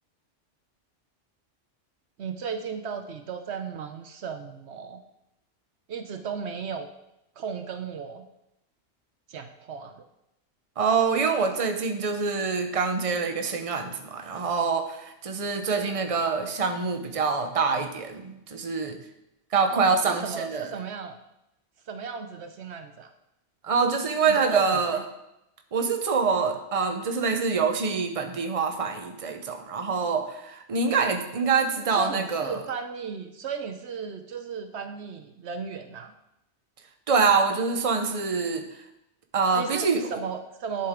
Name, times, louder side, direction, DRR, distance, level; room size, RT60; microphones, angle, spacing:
voice 1, 2.2-5.0 5.9-6.9 7.4-8.3 9.3-10.1 15.7-15.9 19.7-21.2 21.9-23.1 24.3-24.8 31.5-31.6 31.9-36.1 39.5-40.9, right 6 dB, 70° right, 8 dB, 0.9 m, -35 dB
voice 2, 10.8-19.0 19.5-20.7 23.6-25.0 25.7-32.6 37.1-38.6 39.3-40.1, right 5 dB, 30° right, 6 dB, 0.9 m, -25 dB
10.5 x 7.7 x 3.7 m, 0.86 s
omnidirectional pair, 1.2 m